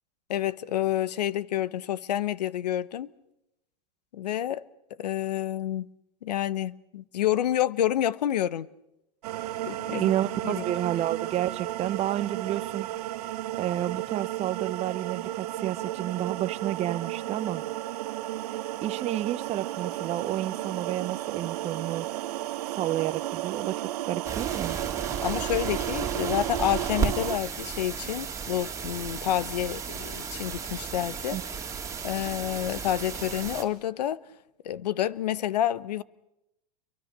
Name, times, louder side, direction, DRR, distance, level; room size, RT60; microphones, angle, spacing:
voice 1, 0.3-3.1 4.1-4.6 5.0-5.9 6.2-8.7 9.6-10.1 10.4-10.6 25.2-31.4 32.0-34.2 34.6-36.0, left 12 dB, 85° left, 0.9 m, -29 dB
sound 1, 9.2-27.4, right 15 dB, 70° right, 1.0 m, -33 dB
voice 2, 9.9-12.9 13.2-13.3 13.6-17.6 18.5-22.1 22.6-24.8 31.3-31.4, right 13 dB, 30° right, 0.9 m, -30 dB
sound 2, 24.3-33.6, right 6 dB, 15° right, 3.5 m, -34 dB
29.5 x 23.5 x 6.7 m
hypercardioid pair, 120°, 20 cm